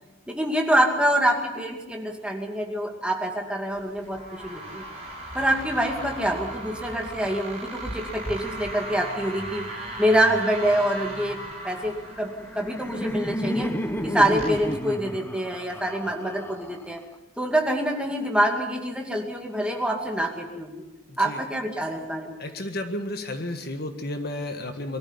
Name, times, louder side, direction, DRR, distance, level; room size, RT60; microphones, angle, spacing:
voice 1, 0.3-4.8 5.3-9.7 10.0-13.7 14.0-17.0 17.4-20.8 21.2-22.4, right 1 dB, 5° right, 2 dB, 2.3 m, -26 dB
sound 1, 3.7-14.7, right 1 dB, 30° right, 7.6 m, -38 dB
Laughter, 12.1-17.1, equal, 10° left, 1.2 m, -32 dB
voice 2, 21.1-21.4 22.4-25.0, left 1 dB, 50° left, 6 dB, 1.7 m, -32 dB
23.0 x 13.5 x 9.8 m, 1.1 s
head